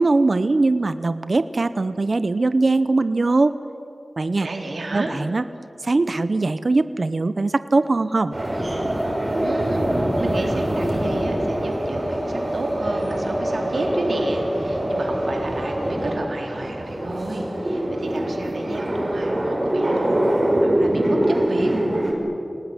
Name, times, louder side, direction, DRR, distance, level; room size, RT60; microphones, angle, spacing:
voice 1, 0.0-3.5 4.2-4.5 4.9-5.4 5.8-8.3, right 3 dB, 65° right, 12 dB, 0.8 m, -21 dB
voice 2, 4.4-5.2 9.4-9.9 10.2-20.3 20.6-21.7, right 2 dB, 80° right, 1 dB, 3.9 m, -30 dB
sound 1, 8.3-22.1, right 1 dB, 40° right, 5.8 m, -24 dB
26.5 x 19.0 x 9.8 m, 2.9 s
wide cardioid pair, 50°, 0 cm